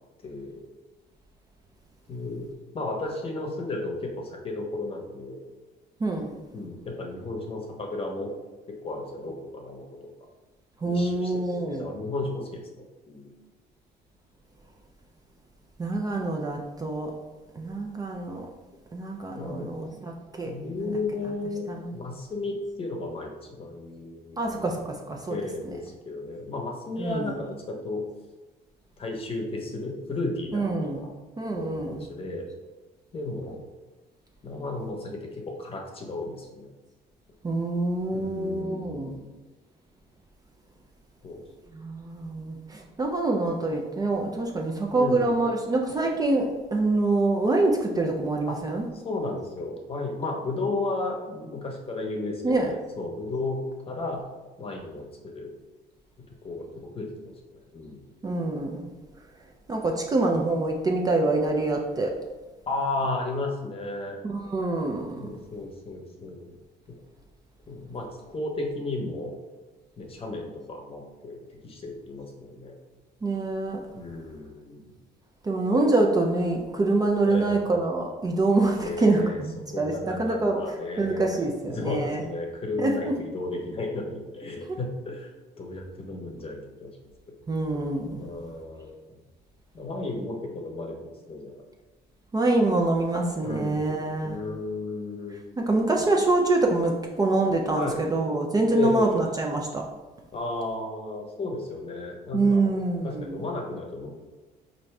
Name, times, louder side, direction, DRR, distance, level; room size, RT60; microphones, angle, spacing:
voice 1, 0.2-0.6 2.1-2.4 2.7-5.4 6.5-8.3 8.8-9.8 10.9-11.4 11.7-13.3 19.3-20.0 20.4-24.7 25.2-28.0 29.0-31.1 31.5-32.5 33.1-33.6 34.4-36.7 38.1-39.3 41.2-41.4 44.9-45.3 48.5-48.6 49.0-53.6 53.9-54.2 54.6-55.0 55.3-55.5 56.4-56.7 56.9-58.0 62.7-64.2 65.2-66.6 67.7-68.1 68.3-69.3 70.0-71.4 71.6-72.8 73.9-74.8 77.2-77.7 78.8-79.4 79.7-81.2 81.7-85.3 85.6-86.9 88.2-89.1 89.7-91.6 93.4-93.8 94.2-95.4 97.7-98.0 98.7-99.2 100.3-102.7 103.0-104.1, left 2 dB, 35° left, 1 dB, 0.9 m, -33 dB
voice 2, 6.0-6.3 10.8-11.9 15.8-17.1 17.6-18.5 18.9-20.9 21.7-22.0 24.4-25.4 25.6-25.7 27.0-27.4 30.5-31.1 31.4-32.1 37.4-39.2 41.7-48.9 52.4-52.7 58.2-58.9 59.7-62.2 64.2-65.4 73.2-73.8 75.4-80.6 81.0-82.2 82.8-83.2 87.5-88.3 92.3-94.4 95.6-99.8 102.3-103.4, right 2 dB, 20° right, 1 dB, 0.4 m, -25 dB
4.6 x 2.6 x 3.2 m, 1.2 s
cardioid pair, 110°, 17 cm